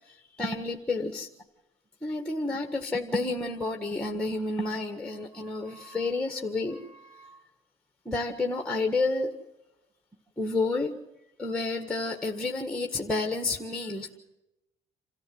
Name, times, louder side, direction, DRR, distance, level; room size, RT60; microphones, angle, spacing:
voice 1, 0.1-1.3 2.0-7.4 8.1-9.3 10.4-10.9 11.4-14.2, left 3 dB, 5° left, 4 dB, 1.7 m, -30 dB
27.5 x 14.5 x 7.9 m, 0.94 s
cardioid pair, 110°, 17 cm